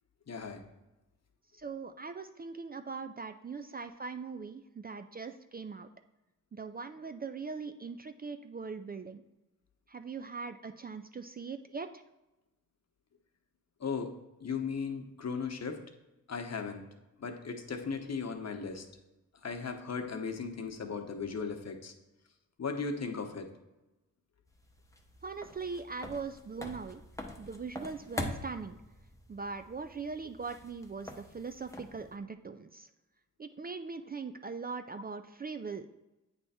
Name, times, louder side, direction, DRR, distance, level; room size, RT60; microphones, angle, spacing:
voice 1, 0.3-0.6 13.8-14.1 14.4-15.8 16.3-16.8 17.2-18.9 19.4-21.9 22.6-23.5, left 5 dB, 50° left, 5 dB, 0.9 m, -37 dB
voice 2, 1.5-5.9 6.5-9.2 9.9-12.0 25.2-27.0 27.4-28.8 29.3-32.9 33.4-35.9, right 4 dB, 30° right, 8 dB, 0.3 m, -41 dB
sound 1, 24.5-32.2, left 1 dB, 10° left, 0.8 m, -44 dB
8.4 x 3.4 x 4.2 m, 0.98 s
cardioid pair, 60°, 33 cm